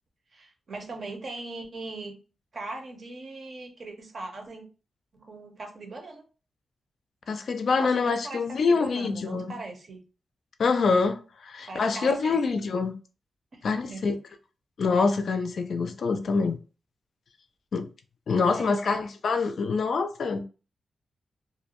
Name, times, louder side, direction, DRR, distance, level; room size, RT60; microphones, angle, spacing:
voice 1, 0.3-2.2 2.5-4.7 5.1-6.2 7.8-10.0 11.7-12.6 13.5-14.0 18.5-18.8, right 2 dB, 45° right, 0.6 m, -40 dB
voice 2, 7.3-9.5 10.6-12.9 13.6-14.2 14.8-16.6 17.7-17.9 18.3-20.4, left 4 dB, 60° left, 0.3 m, -25 dB
2.4 x 2.1 x 2.9 m
wide cardioid pair, 140°, 0 cm